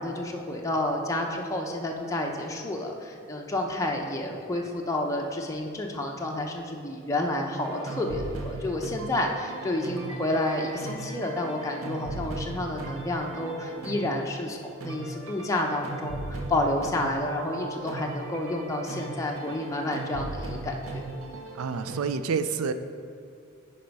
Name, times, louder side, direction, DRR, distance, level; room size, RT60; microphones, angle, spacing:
voice 1, 0.0-21.1, left 1 dB, 15° left, 0 dB, 0.6 m, -30 dB
sound 1, 7.6-22.2, right 2 dB, 75° right, 0.8 m, -38 dB
voice 2, 21.5-22.7, right 5 dB, 90° right, 11 dB, 0.4 m, -28 dB
9.2 x 4.3 x 5.3 m, 2.3 s
head